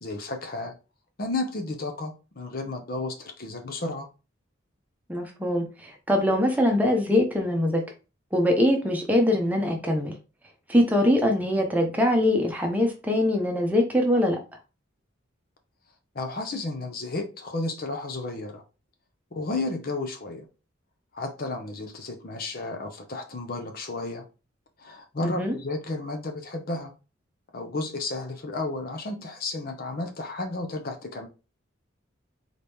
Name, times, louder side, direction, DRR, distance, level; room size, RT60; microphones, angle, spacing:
voice 1, 0.0-0.7 1.2-4.1 16.1-18.6 19.3-20.5 21.1-24.2 24.8-26.9 27.5-31.3, left 2 dB, 45° left, 0.7 m, -32 dB
voice 2, 5.1-7.8 8.3-10.1 10.7-14.4 25.2-25.6, left 1 dB, 10° right, 0.8 m, -23 dB
4.0 x 3.0 x 3.5 m
head